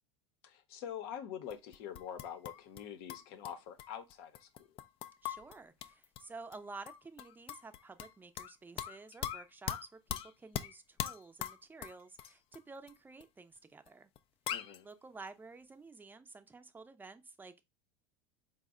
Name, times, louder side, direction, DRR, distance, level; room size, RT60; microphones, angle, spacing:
voice 1, 0.4-4.8 14.5-14.9, left 9 dB, 65° left, 0.8 m, -45 dB
sound 1, 1.5-2.8 3.1-6.2 6.5-6.6 6.9-8.5 8.8-12.6 12.9-13.0 13.2-13.3 13.9-14.0 14.1-14.2 14.5-14.8, left 11 dB, 40° left, 0.4 m, -41 dB
voice 2, 5.2-14.1 14.8-17.6, right 3 dB, 15° right, 0.5 m, -51 dB
4.1 x 2.1 x 3.6 m
hypercardioid pair, 90°, 15 cm